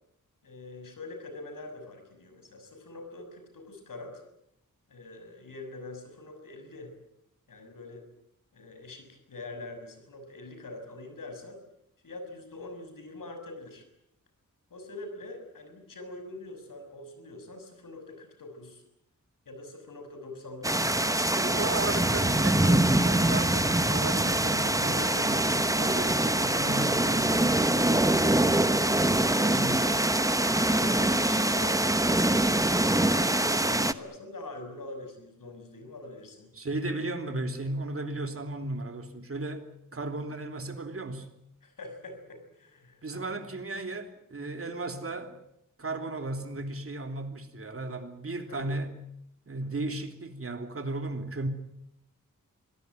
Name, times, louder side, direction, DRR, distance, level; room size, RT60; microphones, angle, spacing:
voice 1, 0.4-4.2 4.9-6.9 7.5-8.1 8.5-11.6 12.0-13.8 14.7-18.8 19.4-21.5 24.8-25.0 26.1-26.3 27.8-28.3 30.6-36.5 41.6-43.3 48.5-48.7, left 2 dB, 75° left, 6.7 m, -44 dB
sound 1, 20.6-33.9, right 1 dB, 10° right, 1.0 m, -24 dB
voice 2, 21.3-28.0 29.4-30.1 36.5-39.7 39.9-41.3 43.0-45.4 45.8-49.0 49.5-51.5, right 2 dB, 40° right, 3.1 m, -35 dB
25.5 x 18.0 x 9.5 m
wide cardioid pair, 130°, 33 cm